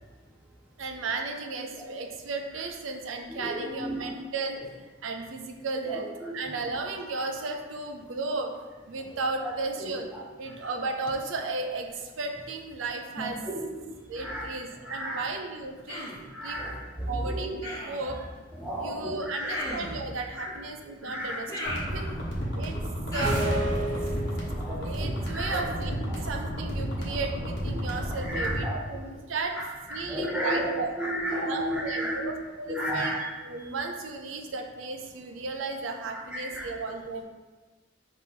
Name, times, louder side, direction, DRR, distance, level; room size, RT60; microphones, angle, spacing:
voice 1, 0.8-6.1 6.3-8.5 8.9-10.1 10.4-13.4 14.1-16.1 16.4-16.6 17.1-18.2 18.6-22.1 22.5-22.8 23.1-23.4 24.8-29.6 29.9-30.9 31.4-37.2, right 3 dB, 85° right, 4 dB, 0.5 m, -34 dB
voice 2, 3.3-4.0 5.8-6.4 9.4-9.5 9.8-10.0 13.2-13.9 14.2-14.5 14.8-15.2 16.1-17.5 18.6-19.6 20.4-20.5 21.0-21.4 21.9-22.1 22.7-23.2 23.8-24.2 24.5-25.6 27.1-27.2 27.7-27.8 28.2-28.8 29.6-29.7 29.9-32.3 32.7-33.2 36.3-36.7, equal, 5° right, -4 dB, 0.4 m, -33 dB
Human voice, 15.9-16.2 17.6-18.1 19.5-20.0 21.5-22.4 23.1-23.6, left 1 dB, 15° left, 1.0 m, -36 dB
sound 1, 21.6-28.7, equal, 60° left, 1.0 m, -32 dB
sound 2, 23.2-24.7, right 1 dB, 40° right, 0.8 m, -29 dB
5.3 x 3.0 x 2.8 m, 1.3 s
head